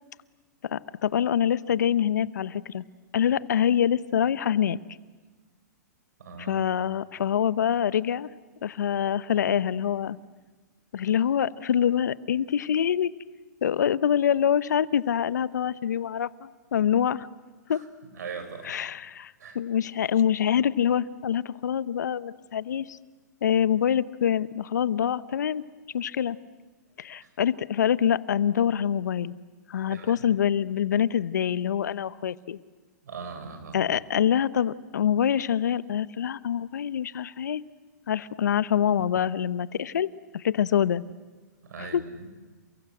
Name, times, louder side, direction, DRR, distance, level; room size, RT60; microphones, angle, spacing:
voice 1, 0.6-2.8 3.1-4.8 6.4-8.3 8.6-10.2 10.9-13.1 13.6-17.3 17.7-17.8 18.6-23.0 23.4-25.6 25.9-26.4 27.0-29.3 29.7-32.6 33.7-37.6 38.1-41.0 41.8-42.0, left 9 dB, 75° left, 17 dB, 0.9 m, -25 dB
voice 2, 6.2-6.7 17.7-17.9 18.1-18.7 19.4-19.6 27.2-27.3 29.9-30.2 33.0-33.8 41.6-42.1, right 5 dB, 70° right, 7 dB, 7.0 m, -40 dB
29.5 x 23.0 x 7.9 m, 1.3 s
hypercardioid pair, 125°, 10 cm